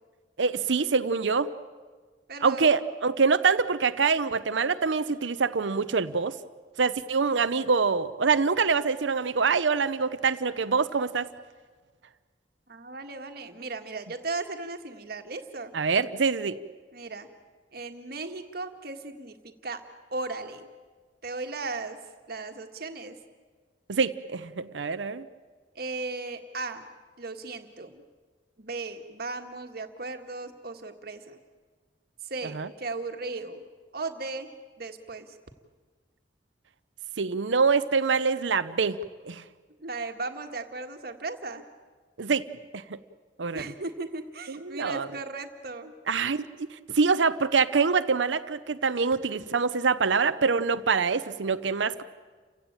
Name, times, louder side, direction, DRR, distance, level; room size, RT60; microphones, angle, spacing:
voice 1, 0.4-1.5 2.4-6.4 6.8-11.3 15.7-16.6 23.9-25.2 32.6-32.7 37.2-39.0 39.3-39.4 42.2-42.4 43.4-43.6 44.6-45.1 46.1-52.0, right 5 dB, 85° right, 13 dB, 0.7 m, -25 dB
voice 2, 2.3-2.7 12.7-15.7 16.9-17.3 17.7-19.8 20.1-20.7 21.2-22.0 22.3-23.2 25.7-26.9 27.2-28.0 28.6-31.4 32.2-33.6 33.9-34.5 34.8-35.3 39.8-41.6 43.5-45.9, right 3 dB, 55° right, 6 dB, 1.7 m, -36 dB
29.5 x 16.0 x 8.9 m, 1.5 s
head